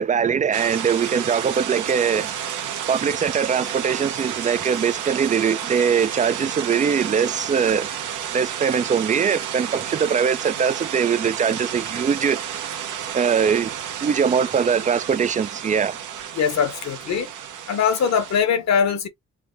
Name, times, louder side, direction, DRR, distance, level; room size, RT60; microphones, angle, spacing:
voice 1, 0.0-2.3 2.9-7.9 8.3-12.4 13.1-13.7 14.0-16.0, right 7 dB, 25° right, 0.3 m, -22 dB
sound 1, 0.5-18.4, right 9 dB, 80° right, 1.0 m, -31 dB
voice 2, 16.3-17.3 17.7-19.1, left 7 dB, 60° left, 1.1 m, -21 dB
3.3 x 2.1 x 3.7 m
cardioid pair, 90°, 30 cm